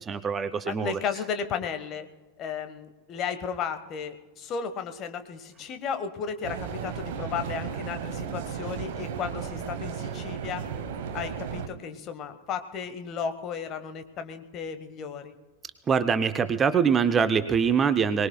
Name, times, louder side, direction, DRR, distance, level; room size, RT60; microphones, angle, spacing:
voice 1, 0.0-1.0 15.9-18.3, right 6 dB, 20° right, 12 dB, 0.6 m, -24 dB
voice 2, 0.7-2.1 2.4-10.7 11.1-15.3, left 7 dB, 35° left, 8 dB, 1.3 m, -34 dB
sound 1, 6.4-11.7, right 7 dB, 50° right, 1.1 m, -34 dB
23.0 x 20.0 x 2.3 m, 1.2 s
figure-of-eight pair, 90°, 0 cm